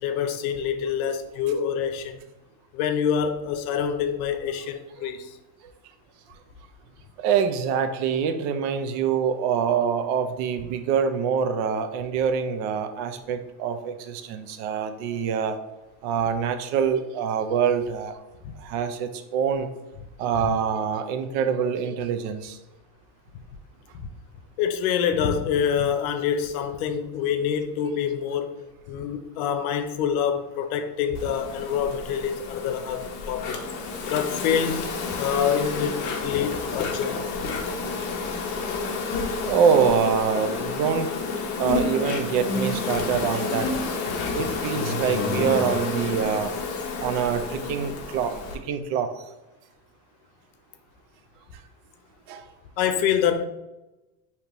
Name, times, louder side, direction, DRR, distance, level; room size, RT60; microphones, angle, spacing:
voice 1, 0.0-2.2 2.7-5.4 18.4-18.5 23.9-24.1 24.6-28.6 28.9-33.6 34.1-34.9 35.2-37.2 52.8-53.4, left 8 dB, 85° left, 0.7 m, -26 dB
voice 2, 7.2-15.6 16.0-18.2 18.6-19.7 20.2-22.6 39.4-41.1 41.6-43.7 44.3-46.5 47.0-49.1 52.3-52.5, right 7 dB, 55° right, 0.5 m, -25 dB
Insect, 31.1-48.6, left 4 dB, 45° left, 0.7 m, -30 dB
5.1 x 2.8 x 2.9 m
cardioid pair, 160°, 41 cm